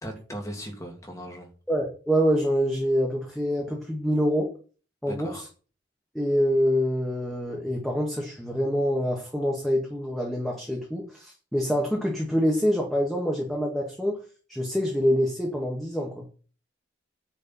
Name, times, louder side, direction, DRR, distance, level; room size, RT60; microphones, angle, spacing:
voice 1, 0.0-1.5 5.1-5.5, equal, 15° left, 2.4 m, -38 dB
voice 2, 1.7-4.5 5.0-5.5 6.1-14.2 14.5-16.2, equal, ahead, 2.0 m, -26 dB
10.0 x 5.2 x 7.6 m
head